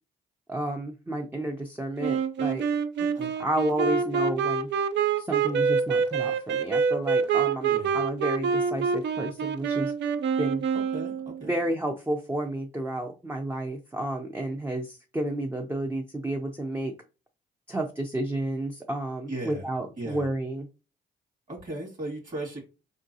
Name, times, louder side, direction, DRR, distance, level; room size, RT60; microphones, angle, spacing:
voice 1, 0.5-2.7 3.4-4.7 5.2-9.9 10.4-10.7 11.4-16.9 17.7-20.7, right 1 dB, 10° right, 3 dB, 0.5 m, -31 dB
Wind instrument woodwind instrument, 2.0-11.5, right 6 dB, 65° right, 0.5 m, -26 dB
voice 2, 3.0-3.3 7.7-8.0 10.7-11.5 19.3-19.7 20.0-20.3 21.5-22.6, right 1 dB, 40° right, -1 dB, 2.2 m, -37 dB
4.5 x 3.7 x 2.7 m, 0.32 s
cardioid pair, 90°, 20 cm